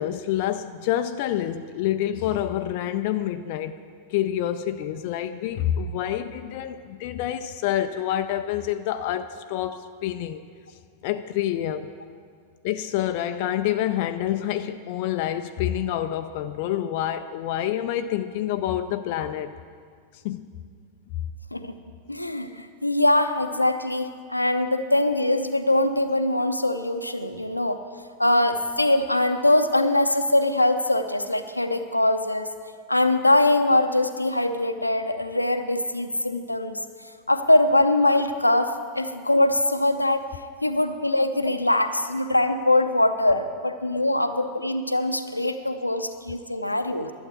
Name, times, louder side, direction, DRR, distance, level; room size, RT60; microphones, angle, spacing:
voice 1, 0.0-3.8 4.1-10.4 11.0-11.9 12.6-19.5 20.2-20.5, left 11 dB, 50° left, 9 dB, 0.4 m, -27 dB
voice 2, 22.1-27.8 28.2-32.5 32.9-36.8 37.3-40.2 40.6-47.1, left 1 dB, 85° left, 8 dB, 0.7 m, -22 dB
11.5 x 8.0 x 8.2 m, 2.1 s
figure-of-eight pair, 90°, 0 cm